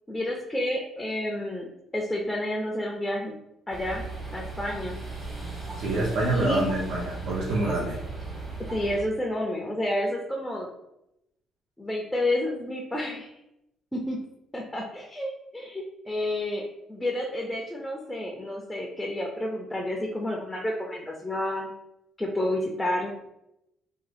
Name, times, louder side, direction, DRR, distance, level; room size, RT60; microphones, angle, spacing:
voice 1, 0.1-1.7 1.9-3.4 3.7-4.1 4.3-5.0 6.3-6.7 8.6-10.7 11.8-13.3 13.9-14.2 14.5-21.7 22.2-23.2, left 1 dB, 5° left, -1 dB, 0.4 m, -30 dB
sound 1, 3.7-9.0, right 3 dB, 30° right, 1.0 m, -37 dB
voice 2, 5.7-8.0, right 2 dB, 80° right, -4 dB, 0.6 m, -26 dB
3.6 x 2.1 x 3.3 m, 0.86 s
cardioid pair, 115°, 0 cm